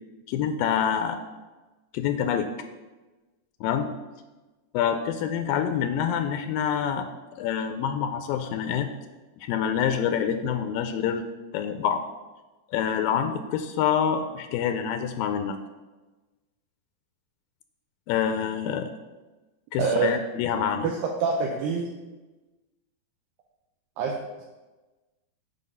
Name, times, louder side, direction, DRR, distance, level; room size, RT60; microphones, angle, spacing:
voice 1, 0.3-1.2 1.9-2.5 3.6-3.9 4.7-7.1 7.4-8.9 9.4-11.2 11.5-12.0 12.7-15.6 18.1-18.9 19.7-20.9, left 8 dB, 85° left, 7 dB, 2.3 m, -26 dB
voice 2, 19.8-20.1 20.8-20.9 21.2-21.9 24.0-24.4, right 5 dB, 80° right, 0 dB, 2.5 m, -26 dB
8.4 x 4.9 x 5.4 m, 1.2 s
omnidirectional pair, 4.0 m